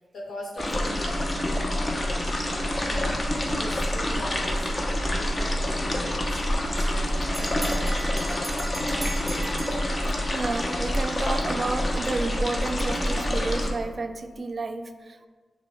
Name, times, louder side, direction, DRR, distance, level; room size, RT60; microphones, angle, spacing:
voice 1, 0.1-3.3 3.6-8.2, left 1 dB, 75° left, -5 dB, 1.2 m, -41 dB
sound 1, 0.6-13.7, left 1 dB, 40° left, 0.8 m, -27 dB
sound 2, 2.7-11.6, equal, 15° left, 1.1 m, -44 dB
Bell, 6.6-10.5, right 1 dB, 5° right, 0.7 m, -39 dB
voice 2, 9.8-15.3, right 3 dB, 45° right, 9 dB, 0.3 m, -31 dB
6.4 x 2.2 x 3.5 m, 1.5 s
cardioid pair, 50°, 0 cm